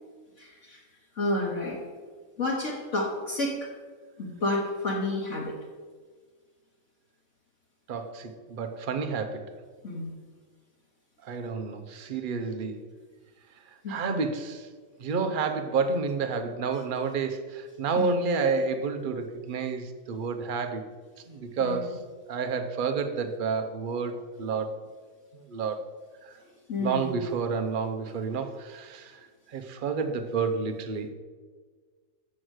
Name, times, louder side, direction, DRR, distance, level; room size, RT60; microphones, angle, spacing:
voice 1, 0.4-0.8 1.1-1.8 2.4-3.7 4.2-5.5 9.8-10.1 13.8-14.0 18.0-18.1 21.6-21.8 26.4-27.1, left 2 dB, 55° left, -3 dB, 1.5 m, -30 dB
voice 2, 7.9-9.5 11.2-12.8 13.7-14.7 15.0-20.8 21.3-22.0 22.3-24.9 25.3-25.8 26.2-26.3 26.8-29.2 29.5-31.1, right 4 dB, 45° right, 6 dB, 0.8 m, -30 dB
7.7 x 6.3 x 6.4 m, 1.5 s
omnidirectional pair, 1.5 m